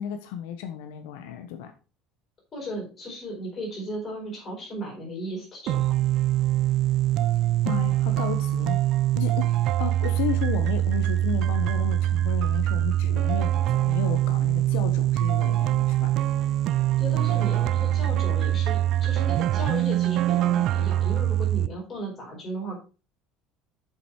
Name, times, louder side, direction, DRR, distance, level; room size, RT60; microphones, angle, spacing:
voice 1, 0.0-1.7 7.6-8.8 9.2-16.1, left 9 dB, 85° left, 7 dB, 1.1 m, -33 dB
voice 2, 2.5-6.0 17.0-22.8, equal, 20° left, -2 dB, 4.7 m, -35 dB
sound 1, 5.7-21.7, right 13 dB, 45° right, 0.4 m, -23 dB
7.4 x 6.9 x 4.7 m, 0.35 s
cardioid pair, 175°, 0 cm